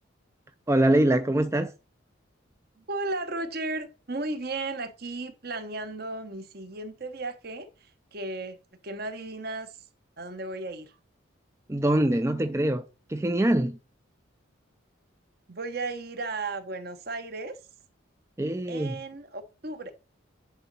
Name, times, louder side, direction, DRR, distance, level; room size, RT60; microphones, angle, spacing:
voice 1, 0.7-1.7 11.7-12.8 13.1-13.8 18.4-19.0, right 1 dB, 15° right, 0.4 m, -23 dB
voice 2, 2.8-8.6 8.8-9.8 10.2-10.9 15.5-17.6 18.7-19.9, right 2 dB, 50° right, 1.1 m, -35 dB
10.5 x 3.9 x 5.5 m
head